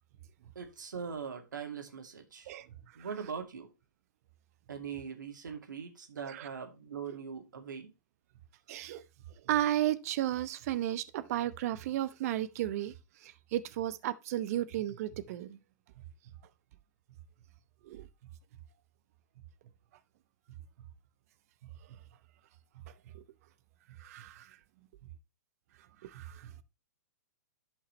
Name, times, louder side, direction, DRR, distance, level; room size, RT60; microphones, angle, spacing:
voice 1, 0.5-2.5 2.9-3.7 4.7-7.9, right 6 dB, 85° right, 2.4 m, -41 dB
voice 2, 8.7-9.0 9.5-12.9 13.2-15.6 17.8-18.1 23.1-23.2 24.0-24.5 26.0-26.5, right 13 dB, 55° right, 0.9 m, -34 dB
11.0 x 5.7 x 3.2 m
hypercardioid pair, 130°, 10 cm